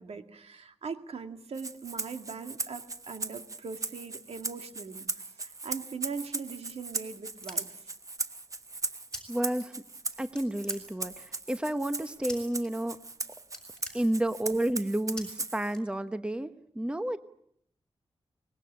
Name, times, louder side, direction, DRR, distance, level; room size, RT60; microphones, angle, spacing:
voice 1, 0.0-7.9, right 5 dB, 85° right, 6 dB, 2.2 m, -41 dB
Rattle (instrument), 1.5-15.7, right 3 dB, 35° right, 1.0 m, -38 dB
sound 1, 6.3-8.0 9.1-9.2 9.5-10.1 10.3-11.3 12.3-12.7 13.0-13.2 13.4-14.6 15.2-15.3 15.7-16.3, left 1 dB, 5° left, 6.6 m, -45 dB
voice 2, 9.3-9.7 10.2-13.0 13.9-17.2, right 1 dB, 10° right, 10 dB, 1.0 m, -31 dB
24.5 x 21.0 x 8.8 m, 0.73 s
wide cardioid pair, 145°, 10 cm